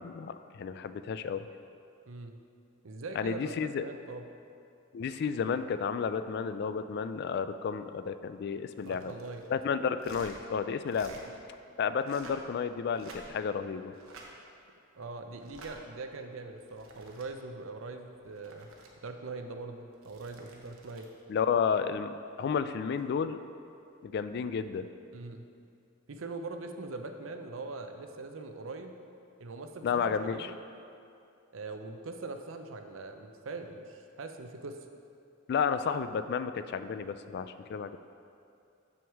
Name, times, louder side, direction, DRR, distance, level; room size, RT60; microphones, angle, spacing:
voice 1, 0.0-1.5 3.2-3.8 4.9-9.1 9.5-11.2 11.8-13.9 21.3-23.4 24.0-24.9 29.8-30.5 35.5-38.0, left 6 dB, 55° left, 12 dB, 0.3 m, -32 dB
voice 2, 2.1-2.4 2.8-4.3 8.8-9.4 11.2-11.4 14.9-18.7 19.0-21.1 25.1-25.5 26.1-28.9 29.4-30.6 31.5-34.8, right 3 dB, 70° right, 6 dB, 0.6 m, -42 dB
sound 1, 8.7-9.5 10.0-10.4 10.8-11.2 11.9-12.5 12.9-13.5 13.9-14.3 15.4-15.7 16.5-17.3 18.1-18.9 19.9-21.1 23.0-23.2, right 3 dB, 90° right, 1.0 m, -52 dB
7.2 x 6.2 x 4.7 m, 2.5 s
head